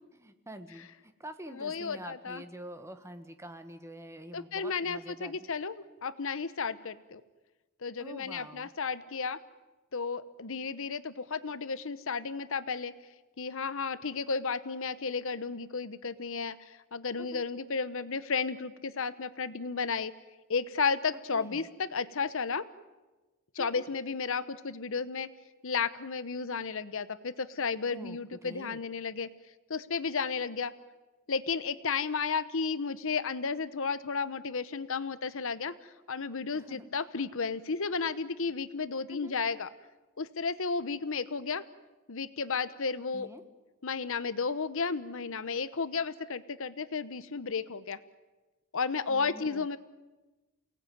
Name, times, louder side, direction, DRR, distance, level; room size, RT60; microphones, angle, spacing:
voice 1, 0.1-5.5 8.0-8.7 17.2-17.4 21.3-21.7 23.6-23.8 27.9-28.8 36.5-36.9 39.1-39.3 43.1-43.4 49.1-49.8, right 1 dB, 15° right, 8 dB, 1.6 m, -46 dB
voice 2, 1.6-2.4 4.3-7.2 7.8-9.4 9.9-12.9 13.4-20.1 20.5-22.6 23.5-25.3 25.6-29.3 29.7-30.7 31.3-35.7 36.1-39.7 40.2-41.6 42.1-43.3 43.8-48.0 48.7-49.8, left 5 dB, 65° left, 14 dB, 1.0 m, -33 dB
28.5 x 18.5 x 9.4 m, 1.2 s
head